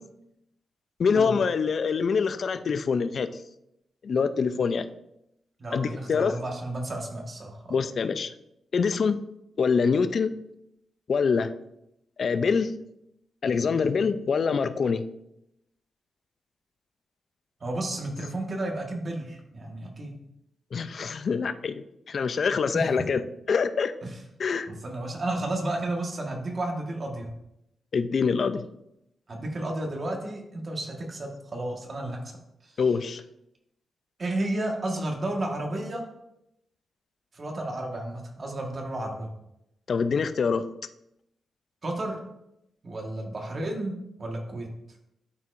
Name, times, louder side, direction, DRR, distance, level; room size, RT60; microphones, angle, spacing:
voice 1, 1.0-3.3 4.0-4.9 5.7-6.4 7.7-8.3 8.7-9.2 9.6-10.3 11.1-11.5 12.2-12.7 13.4-15.0 20.7-23.9 24.4-24.7 27.9-28.6 32.8-33.2 39.9-40.7, left 5 dB, 55° left, 11 dB, 0.4 m, -25 dB
voice 2, 5.6-7.8 17.6-20.1 22.7-22.9 24.0-24.2 24.7-27.3 29.3-32.3 32.6-32.8 34.2-36.0 37.3-39.3 41.8-42.2 42.8-44.7, right 1 dB, 40° right, 1 dB, 1.5 m, -32 dB
11.5 x 4.6 x 2.6 m, 0.83 s
cardioid pair, 105°, 0 cm